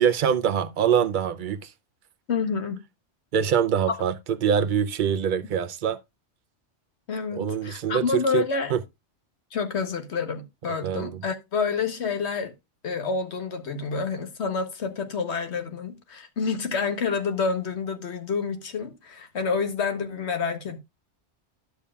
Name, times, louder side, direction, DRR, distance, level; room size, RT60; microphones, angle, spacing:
voice 1, 0.0-1.7 3.3-6.0 7.4-8.4 8.7-8.8 10.8-11.2, right 8 dB, 55° right, 0.7 m, -24 dB
voice 2, 2.3-2.8 3.9-4.0 7.1-8.7 9.5-12.5 12.8-20.8, left 5 dB, 70° left, 1.3 m, -28 dB
11.5 x 6.9 x 2.3 m
omnidirectional pair, 1.2 m